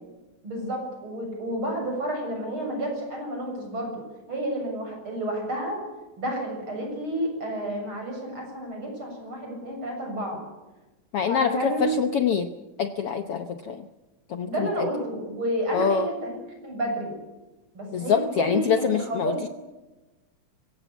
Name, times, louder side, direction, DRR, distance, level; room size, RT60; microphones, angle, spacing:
voice 1, 0.4-4.0 4.3-5.8 6.2-10.4 11.3-12.0 14.5-16.4 16.6-17.1 17.7-19.4, right 1 dB, 40° right, 1 dB, 7.9 m, -30 dB
voice 2, 11.1-12.5 12.8-13.9 14.3-14.9 15.7-16.1 17.9-19.5, left 6 dB, 65° left, 8 dB, 1.5 m, -25 dB
22.0 x 17.5 x 8.3 m, 1.1 s
omnidirectional pair, 3.6 m